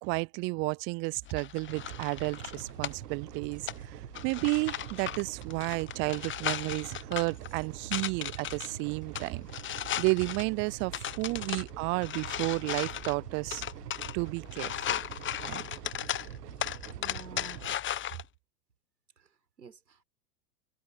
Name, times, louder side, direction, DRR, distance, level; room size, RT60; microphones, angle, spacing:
voice 1, 0.0-4.0 4.2-9.5 9.7-13.6 14.1-15.0 15.4-15.6, right 30 dB, 25° right, 0.4 m, -32 dB
sound 1, 1.2-18.2, left 11 dB, 25° left, 1.1 m, -37 dB
sound 2, 1.7-17.8, right 14 dB, 70° right, 1.1 m, -45 dB
voice 2, 17.0-17.7 19.2-20.0, right 4 dB, 90° right, 5.4 m, -50 dB
hypercardioid pair, 95°, 49 cm